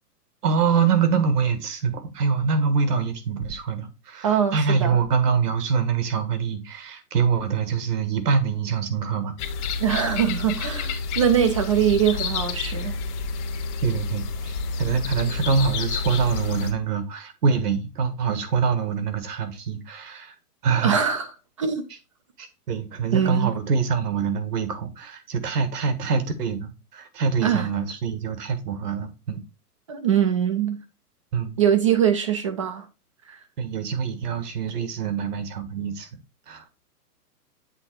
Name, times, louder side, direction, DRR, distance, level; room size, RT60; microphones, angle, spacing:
voice 1, 0.4-9.4 13.8-20.4 20.6-21.0 22.4-29.4 31.3-31.6 33.6-36.1 36.5-36.7, right 5 dB, 75° right, 1.7 m, -25 dB
voice 2, 4.2-5.0 9.8-13.0 20.8-21.3 21.6-21.8 23.1-23.5 27.4-27.7 29.9-30.8 31.6-32.9 33.3-33.4, right 8 dB, 25° right, 0.4 m, -22 dB
sound 1, 9.4-16.7, left 4 dB, 45° left, 1.2 m, -29 dB
8.0 x 3.4 x 4.6 m
hypercardioid pair, 140°, 47 cm